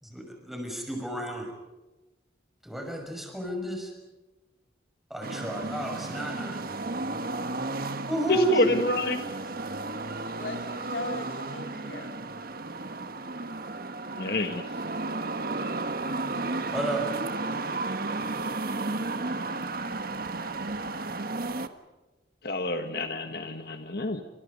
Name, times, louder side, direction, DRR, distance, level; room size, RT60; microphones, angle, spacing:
voice 1, 0.0-1.5 2.6-3.9 5.1-6.6 8.1-8.7 16.7-17.1, right 1 dB, ahead, 2 dB, 6.1 m, -31 dB
sound 1, 5.2-21.7, right 2 dB, 50° right, 1.4 m, -33 dB
voice 2, 8.3-9.3 14.2-14.6 22.4-24.2, left 2 dB, 55° left, 6 dB, 1.6 m, -28 dB
voice 3, 10.3-12.3 23.2-23.3, left 2 dB, 85° left, 5 dB, 2.9 m, -39 dB
29.5 x 27.0 x 5.4 m, 1.1 s
head